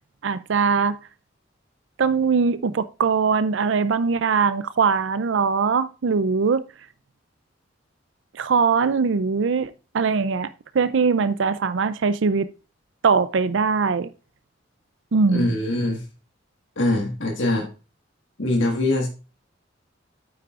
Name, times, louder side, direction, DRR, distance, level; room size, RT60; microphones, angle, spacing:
voice 1, 0.2-1.0 2.0-6.6 8.3-12.5 13.0-14.1 15.1-15.5, right 5 dB, 75° right, 0.5 m, -21 dB
voice 2, 15.3-16.0 16.8-17.7 18.4-19.1, left 1 dB, 80° left, 1.7 m, -23 dB
9.3 x 8.2 x 2.5 m
head